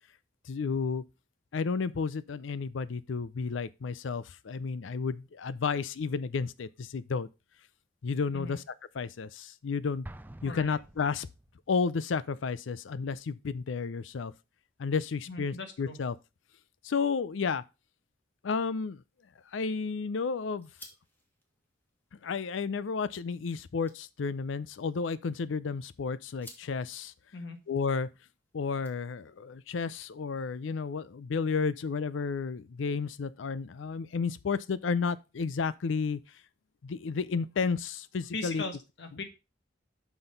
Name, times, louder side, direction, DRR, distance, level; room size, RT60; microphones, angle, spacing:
voice 1, 0.5-1.0 1.5-7.3 8.0-8.6 8.9-10.1 10.4-11.3 11.7-14.3 14.8-16.1 16.8-17.6 18.4-19.0 19.5-20.7 22.2-27.1 27.7-28.1 28.5-36.2 36.8-38.7, left 5 dB, 85° left, 0.5 m, -32 dB
Explosion, 10.0-11.7, right 1 dB, 10° right, 0.4 m, -48 dB
voice 2, 10.4-10.8 15.3-16.0 27.3-27.6 38.3-39.2, left 3 dB, 65° left, 1.5 m, -39 dB
sound 1, 19.2-29.5, left 1 dB, 10° left, 1.7 m, -59 dB
6.2 x 5.8 x 5.2 m
head